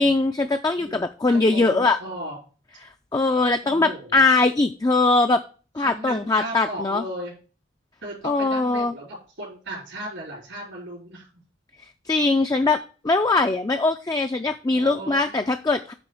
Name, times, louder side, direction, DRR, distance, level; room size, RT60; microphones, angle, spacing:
voice 1, 0.0-2.0 3.1-5.4 5.8-7.0 8.2-8.9 12.1-15.9, left 3 dB, 20° left, 7 dB, 0.3 m, -21 dB
voice 2, 1.2-2.4 3.6-4.2 5.8-7.3 8.0-11.3 14.7-15.5, right 1 dB, 85° right, -6 dB, 3.7 m, -36 dB
8.9 x 3.7 x 6.9 m, 0.37 s
head